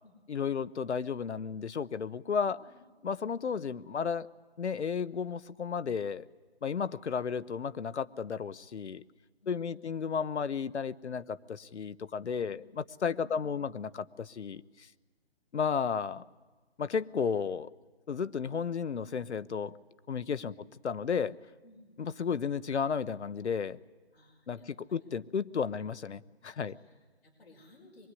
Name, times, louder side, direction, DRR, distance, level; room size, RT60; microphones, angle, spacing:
voice 1, 0.3-2.6 3.0-4.3 4.6-6.3 6.6-9.0 9.5-14.9 15.5-16.3 16.8-17.7 18.1-19.8 20.1-20.5 20.8-21.3 22.0-23.8 24.5-26.7, left 6 dB, 85° left, 15 dB, 1.0 m, -33 dB
voice 2, 2.4-2.8 9.4-9.9 12.3-12.6 13.1-13.7 20.5-20.6 21.6-21.8 24.1-25.1 25.7-25.8 26.6-28.1, left 2 dB, 55° left, -1 dB, 5.0 m, -59 dB
23.5 x 20.5 x 9.9 m, 1.3 s
hypercardioid pair, 180°, 33 cm